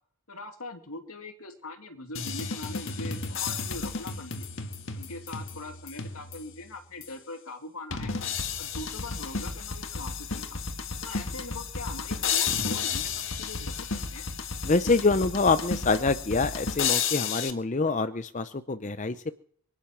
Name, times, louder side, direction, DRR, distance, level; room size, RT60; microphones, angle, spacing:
voice 1, 0.3-4.5 4.9-8.1 8.6-10.6 11.0-14.3, left 2 dB, 80° left, 6 dB, 2.6 m, -42 dB
sound 1, 2.1-6.6 7.0-7.1 7.9-17.5, left 6 dB, 60° left, 1.7 m, -32 dB
voice 2, 14.6-19.3, left 3 dB, 35° left, 11 dB, 0.6 m, -25 dB
23.5 x 10.5 x 6.1 m, 0.62 s
head